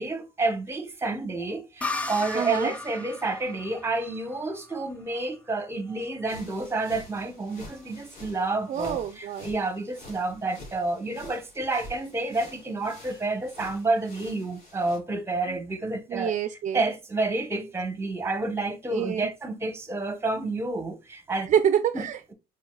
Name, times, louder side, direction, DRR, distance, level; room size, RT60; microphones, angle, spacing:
voice 1, 0.0-16.3 16.7-21.5 21.9-22.1, right 2 dB, 15° right, 0.9 m, -29 dB
sound 1, 1.8-5.3, left 3 dB, 10° left, 0.6 m, -36 dB
voice 2, 2.3-2.7 8.7-9.5 15.5-15.6 16.1-16.8 18.9-19.3 21.5-22.3, right 9 dB, 45° right, 0.4 m, -27 dB
sound 2, 6.3-15.0, left 1 dB, 55° left, 2.9 m, -47 dB
4.8 x 4.5 x 2.2 m
cardioid pair, 110°, 17 cm